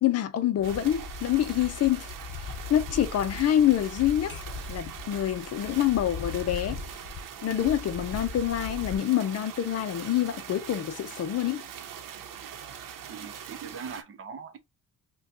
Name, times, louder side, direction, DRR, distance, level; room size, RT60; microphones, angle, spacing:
voice 1, 0.0-2.1 2.7-4.4 4.7-6.8 7.4-11.6, left 11 dB, 50° left, 0.5 m, -26 dB
sound 1, 0.6-9.0, left 4 dB, 35° left, 0.9 m, -40 dB
sound 2, 0.6-14.0, right 8 dB, 90° right, 0.8 m, -42 dB
voice 2, 13.1-14.6, right 6 dB, 45° right, 0.7 m, -41 dB
5.5 x 2.3 x 2.7 m
cardioid pair, 155°, 32 cm